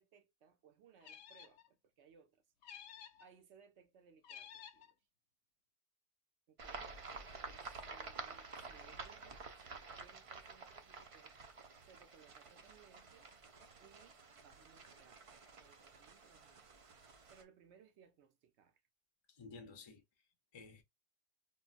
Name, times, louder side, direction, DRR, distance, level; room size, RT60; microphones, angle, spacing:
voice 1, 0.0-2.4 3.2-5.1 6.5-11.4 11.8-13.4 13.8-15.2 15.6-16.9 17.3-18.8, right 7 dB, 90° right, 1.0 m, -65 dB
sound 1, 1.0-1.7 2.6-3.3 4.2-4.9, left 8 dB, 90° left, 0.9 m, -53 dB
sound 2, 6.6-17.4, right 4 dB, 50° right, 0.4 m, -51 dB
voice 2, 19.3-20.8, left 4 dB, 30° left, 0.5 m, -55 dB
3.7 x 2.1 x 2.4 m
omnidirectional pair, 1.1 m